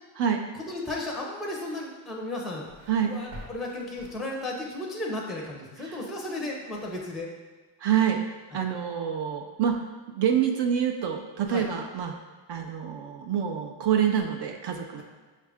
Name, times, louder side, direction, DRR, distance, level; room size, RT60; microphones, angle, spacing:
voice 1, 0.7-2.6 3.1-7.3 8.5-8.6 11.5-11.7 15.0-15.1, left 1 dB, ahead, 0 dB, 0.5 m, -34 dB
sound 1, 2.0-4.7, equal, 90° right, 1.2 m, -48 dB
voice 2, 7.8-8.2 8.5-9.8 10.1-12.1 12.5-15.0, right 8 dB, 55° right, 3 dB, 0.5 m, -26 dB
6.3 x 2.5 x 3.4 m, 1.4 s
cardioid pair, 135°, 50 cm